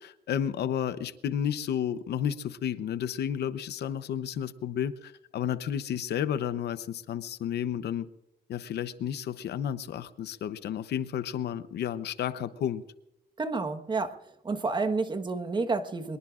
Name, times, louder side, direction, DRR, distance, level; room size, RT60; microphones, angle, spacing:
voice 1, 0.0-8.1 8.5-12.8, left 9 dB, 70° left, 13 dB, 0.9 m, -32 dB
voice 2, 13.4-16.2, right 3 dB, 25° right, 8 dB, 1.3 m, -30 dB
23.5 x 21.5 x 2.5 m, 0.90 s
cardioid pair, 135°, 18 cm